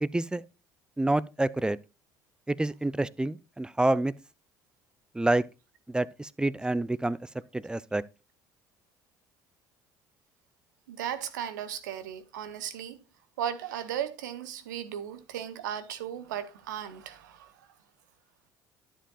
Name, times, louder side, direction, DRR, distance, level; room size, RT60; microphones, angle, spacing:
voice 1, 0.0-0.4 1.0-1.8 2.5-4.1 5.1-5.4 5.9-7.2 7.5-8.0, right 2 dB, 10° right, 0.5 m, -27 dB
voice 2, 10.9-13.0 13.4-17.7, right 9 dB, 75° right, 0.8 m, -36 dB
12.0 x 7.6 x 2.3 m
hypercardioid pair, 60°, 10 cm